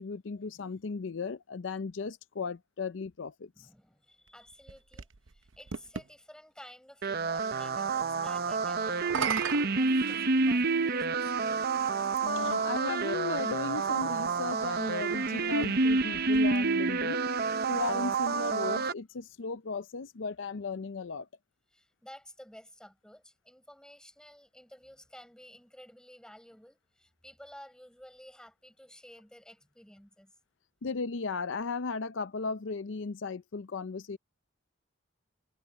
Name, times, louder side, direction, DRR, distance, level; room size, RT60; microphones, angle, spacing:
voice 1, 0.0-3.7 12.2-17.2 17.6-21.3 30.8-34.2, left 4 dB, 70° left, 0.6 m, -36 dB
voice 2, 3.5-11.4 15.4-15.7 21.7-30.3, left 1 dB, 5° left, 6.3 m, -53 dB
sound 1, 4.3-6.1 8.9-10.7 11.7-11.8 15.5-17.0, right 6 dB, 85° right, 0.8 m, -37 dB
sound 2, 7.0-18.9, right 4 dB, 55° right, 0.7 m, -29 dB
head